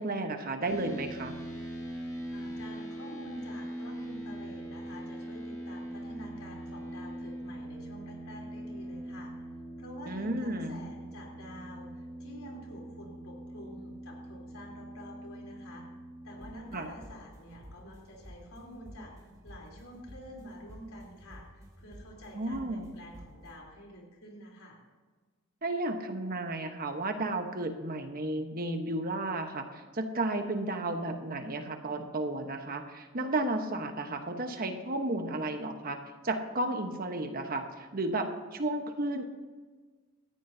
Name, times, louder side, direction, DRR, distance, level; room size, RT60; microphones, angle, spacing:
voice 1, 0.0-1.3 10.1-10.8 16.7-16.9 22.3-22.9 25.6-36.0 36.2-39.2, right 2 dB, 45° right, 6 dB, 1.1 m, -33 dB
sound 1, 0.6-16.5, right 1 dB, 15° left, 2.9 m, -42 dB
voice 2, 2.3-9.3 9.8-15.9 16.2-19.1 19.4-24.8, equal, 85° left, -1 dB, 3.6 m, -48 dB
sound 2, 16.3-23.5, equal, 15° right, 2.4 m, -52 dB
17.5 x 14.0 x 2.8 m, 1.4 s
head